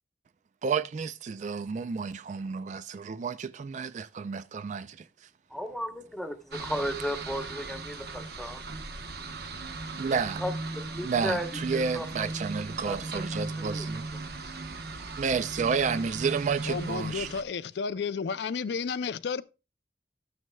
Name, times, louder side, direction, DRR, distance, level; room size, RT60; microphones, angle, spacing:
voice 1, 0.6-5.1 10.0-10.4 11.0-14.0 15.2-17.3, right 5 dB, 45° right, 0.3 m, -31 dB
voice 2, 5.5-8.6 10.4-10.5 10.9-11.5 11.7-12.1 12.8-13.2 13.7-13.9, equal, ahead, 0.9 m, -34 dB
sound 1, 6.5-17.4, right 3 dB, 65° right, 0.9 m, -37 dB
voice 3, 16.7-19.4, left 5 dB, 70° left, 0.4 m, -32 dB
12.0 x 9.2 x 2.2 m
head